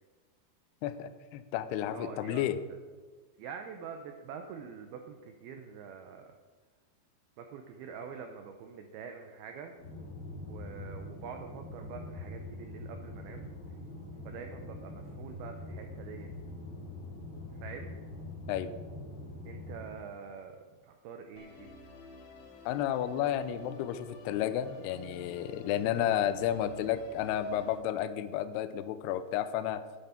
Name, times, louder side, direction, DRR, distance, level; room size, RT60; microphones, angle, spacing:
voice 1, 0.8-2.6 18.5-18.7 22.7-29.8, left 10 dB, 85° left, 11 dB, 2.4 m, -32 dB
voice 2, 1.9-2.5 3.4-6.4 7.4-9.7 10.5-13.5 14.2-16.3 17.6-18.0 19.5-21.7, right 6 dB, 80° right, 5 dB, 2.2 m, -45 dB
sound 1, 9.8-19.9, left 2 dB, 45° left, 2.3 m, -44 dB
Musical instrument, 21.4-27.8, left 2 dB, 65° left, 2.3 m, -51 dB
10.5 x 9.1 x 4.4 m, 1.5 s
omnidirectional pair, 5.2 m